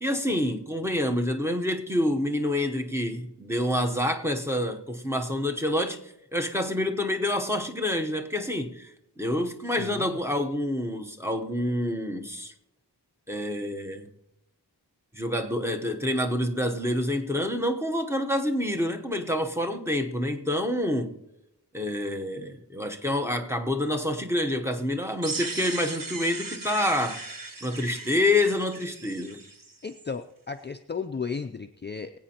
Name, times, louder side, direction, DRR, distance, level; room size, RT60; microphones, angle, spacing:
voice 1, 0.0-6.0 6.3-8.9 9.2-12.5 13.3-14.1 15.1-21.2 21.7-27.2 27.6-29.4, left 1 dB, 5° right, 0.9 m, -27 dB
voice 2, 9.8-10.2 29.8-32.2, left 5 dB, 25° left, 0.4 m, -34 dB
sound 1, 25.2-30.1, right 3 dB, 55° right, 1.3 m, -38 dB
23.0 x 8.5 x 2.9 m
wide cardioid pair, 105°, 40 cm